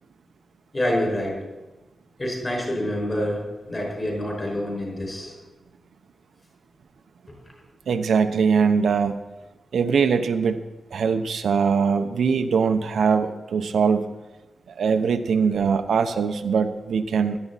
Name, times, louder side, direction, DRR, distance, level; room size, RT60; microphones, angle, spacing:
voice 1, 0.7-1.4 2.2-5.3, left 1 dB, 25° left, -1 dB, 5.3 m, -27 dB
voice 2, 7.9-9.2 9.7-10.6 10.9-14.2 14.8-17.4, right 6 dB, 80° right, 7 dB, 0.7 m, -22 dB
16.5 x 12.5 x 4.1 m, 1.1 s
wide cardioid pair, 165°, 0 cm